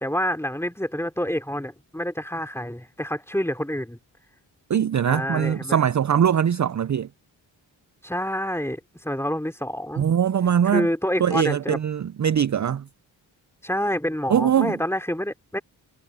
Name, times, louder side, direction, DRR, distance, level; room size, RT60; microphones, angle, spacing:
voice 1, 0.0-4.0 5.1-5.8 8.0-10.0 10.6-11.8 13.6-15.6, equal, 5° left, 3.1 m, -27 dB
voice 2, 4.7-7.1 10.0-10.9 11.2-12.8 14.3-14.8, right 8 dB, 40° right, 0.5 m, -21 dB
cardioid pair, 40°, 46 cm